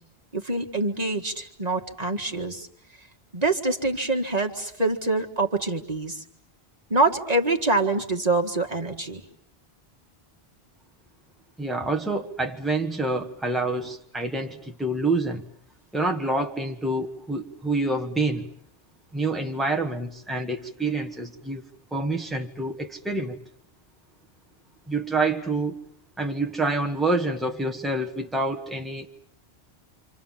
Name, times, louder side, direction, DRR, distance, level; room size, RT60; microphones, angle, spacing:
voice 1, 0.3-2.7 3.3-6.2 6.9-9.2, right 2 dB, 40° right, 2 dB, 2.0 m, -25 dB
voice 2, 11.6-15.4 15.9-18.5 19.1-21.6 21.9-23.4 24.9-25.8 26.2-29.1, right 2 dB, ahead, 2 dB, 1.7 m, -27 dB
28.5 x 27.0 x 7.4 m, 0.63 s
omnidirectional pair, 1.1 m